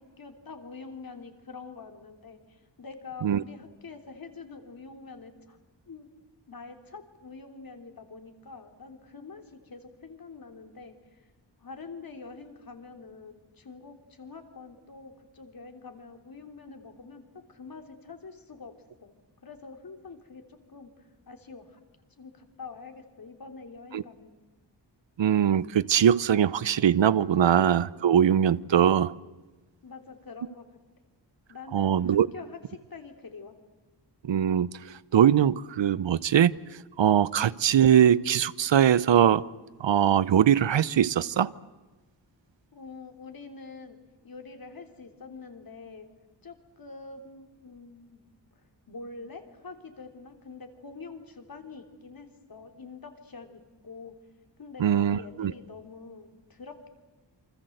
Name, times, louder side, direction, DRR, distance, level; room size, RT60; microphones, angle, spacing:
voice 1, 0.0-5.6 5.9-6.1 6.5-11.2 11.6-18.7 19.0-19.1 19.4-20.4 20.7-21.8 22.2-24.3 29.8-30.7 31.5-32.6 32.9-33.6 42.7-44.0 44.2-46.1 46.4-48.2 48.5-54.1 54.6-56.9, left 4 dB, 50° left, 5 dB, 3.4 m, -45 dB
voice 2, 25.2-29.1 31.7-32.3 34.2-36.5 37.0-39.4 39.8-41.5 54.8-55.5, right 9 dB, 80° right, 18 dB, 0.9 m, -22 dB
28.0 x 25.5 x 7.9 m, 1.2 s
wide cardioid pair, 145°, 43 cm